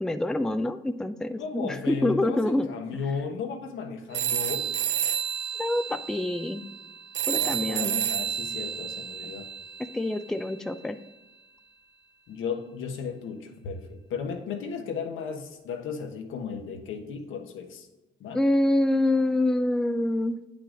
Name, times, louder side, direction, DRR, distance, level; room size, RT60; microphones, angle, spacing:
voice 1, 0.0-2.7 2.9-3.0 5.6-6.6 7.3-7.9 9.8-11.0 18.3-20.4, left 1 dB, 5° left, 10 dB, 0.4 m, -26 dB
voice 2, 1.4-4.7 7.4-9.5 12.3-17.9 18.2-18.4, left 6 dB, 80° left, 4 dB, 1.2 m, -35 dB
sound 1, 4.1-10.3, right 9 dB, 65° right, 0.7 m, -31 dB
8.6 x 5.7 x 3.8 m, 1.1 s
cardioid pair, 90°, 20 cm